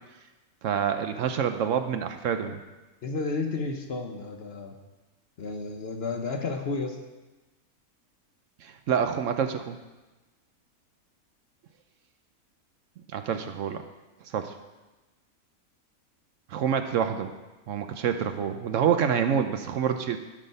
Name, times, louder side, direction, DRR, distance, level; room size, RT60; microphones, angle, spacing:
voice 1, 0.6-2.6 8.6-9.8 13.1-13.8 14.3-14.5 16.5-17.3 17.7-20.2, right 8 dB, 70° right, 8 dB, 0.9 m, -27 dB
voice 2, 3.0-4.7 5.4-7.0, left 3 dB, 50° left, 4 dB, 0.9 m, -32 dB
12.0 x 5.4 x 5.4 m, 1.1 s
omnidirectional pair, 1.5 m